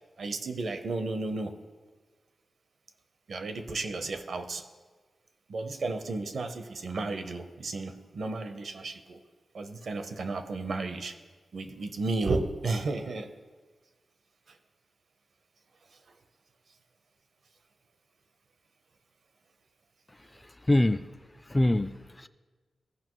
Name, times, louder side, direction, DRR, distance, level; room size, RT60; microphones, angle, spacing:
voice 1, 0.2-1.5 3.3-4.6 5.5-9.2 9.5-11.1 11.5-13.3, right 3 dB, 70° right, 8 dB, 0.8 m, -33 dB
voice 2, 20.4-21.0 21.5-22.3, left 1 dB, 15° left, 13 dB, 0.3 m, -25 dB
16.0 x 5.7 x 3.1 m, 1.4 s
wide cardioid pair, 105°, 0 cm